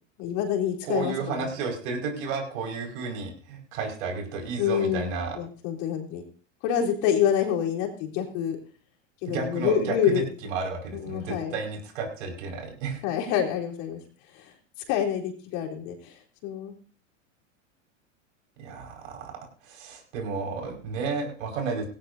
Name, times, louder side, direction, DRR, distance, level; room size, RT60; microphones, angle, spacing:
voice 1, 0.2-1.5 4.6-6.2 6.6-8.6 9.2-10.3 10.9-11.6 13.0-14.0 14.3-14.5 14.9-16.2 16.4-16.7, left 9 dB, 55° left, 1 dB, 3.9 m, -27 dB
voice 2, 0.9-5.4 9.3-13.0 18.6-19.4 19.6-21.9, right 4 dB, 70° right, 1 dB, 5.5 m, -32 dB
19.0 x 16.5 x 2.8 m, 0.43 s
hypercardioid pair, 105°, 39 cm